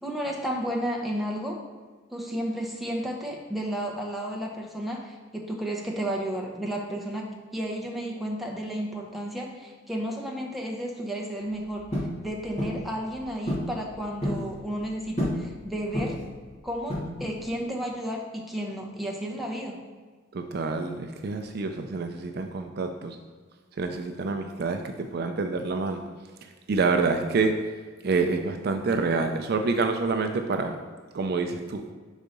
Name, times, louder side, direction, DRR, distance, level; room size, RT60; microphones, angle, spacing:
voice 1, 0.0-1.6 2.1-11.8 12.2-16.2 16.6-19.8, equal, ahead, -2 dB, 0.7 m, -32 dB
sound 1, 11.9-12.2 12.6-12.8 13.5-13.7 14.0-14.5 15.2-15.5 15.9-16.3 16.9-17.4, left 1 dB, 35° left, 1.3 m, -29 dB
voice 2, 20.3-23.2 23.8-24.8 25.1-26.0 26.7-27.5 28.0-30.7 31.1-31.8, right 4 dB, 50° right, 6 dB, 0.4 m, -27 dB
4.5 x 4.1 x 5.2 m, 1.5 s
head